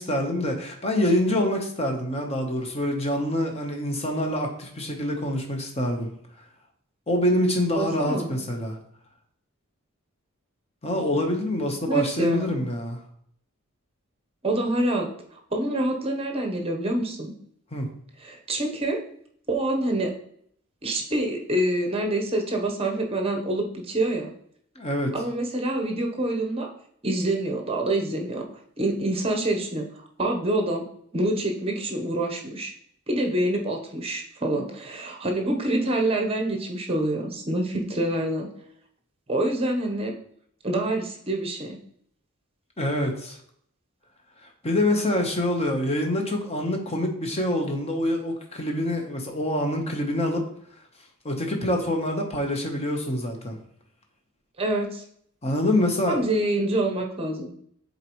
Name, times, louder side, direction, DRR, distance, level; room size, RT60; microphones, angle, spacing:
voice 1, 0.0-6.1 7.1-8.8 10.8-13.0 17.7-17.9 24.8-25.2 42.8-43.4 44.4-50.4 51.2-53.6 55.4-56.2, left 1 dB, 30° left, 3 dB, 1.1 m, -26 dB
voice 2, 7.7-8.3 11.8-12.5 14.4-15.1 15.5-17.3 18.2-19.0 19.5-20.1 20.8-24.3 25.1-26.7 27.0-28.4 28.8-29.9 30.2-30.8 31.1-32.7 33.1-38.5 39.3-40.1 40.6-41.8 54.6-55.0 56.1-57.5, right 1 dB, 25° right, 2 dB, 1.0 m, -26 dB
7.5 x 4.1 x 3.1 m, 0.66 s
head